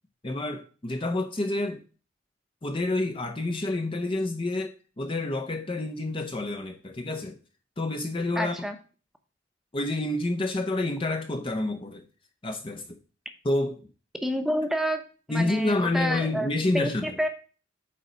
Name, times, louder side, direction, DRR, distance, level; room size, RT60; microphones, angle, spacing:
voice 1, 0.2-1.8 2.6-7.4 7.8-8.6 9.7-12.0 12.4-12.9 13.4-13.8 15.3-17.2, left 2 dB, 25° left, 0.7 m, -28 dB
voice 2, 8.4-8.8 14.2-15.0 15.3-16.5 16.7-17.3, equal, ahead, 0.9 m, -28 dB
8.5 x 4.1 x 5.0 m
head